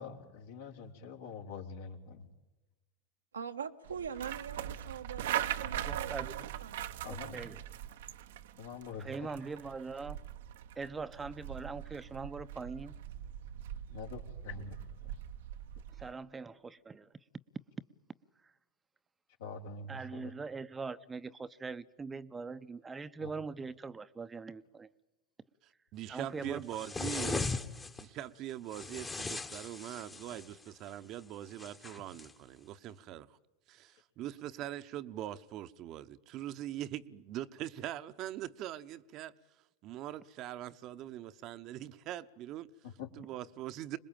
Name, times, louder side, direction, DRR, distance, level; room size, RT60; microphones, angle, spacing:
voice 1, 0.0-2.3 7.0-7.4 8.6-9.3 13.9-14.8 15.0-15.1 19.4-20.3 23.2-23.3 42.8-43.1, left 4 dB, 70° left, 3.5 m, -45 dB
voice 2, 3.3-6.9, right 7 dB, 85° right, 1.3 m, -43 dB
sound 1, 3.9-16.1, right 11 dB, 70° right, 1.0 m, -41 dB
voice 3, 5.8-6.5 7.3-7.6 9.0-10.2 10.8-12.9 15.9-17.1 18.4-18.5 19.9-24.9 26.1-26.9, right 4 dB, 20° right, 0.8 m, -42 dB
voice 4, 25.9-27.5 27.9-33.4 33.7-39.3 39.8-42.7 43.2-44.0, right 13 dB, 45° right, 1.0 m, -42 dB
sound 2, 26.7-28.0 28.7-30.5 31.6-32.3, left 3 dB, 15° left, 1.4 m, -38 dB
26.0 x 21.0 x 9.0 m
hypercardioid pair, 90°, 0 cm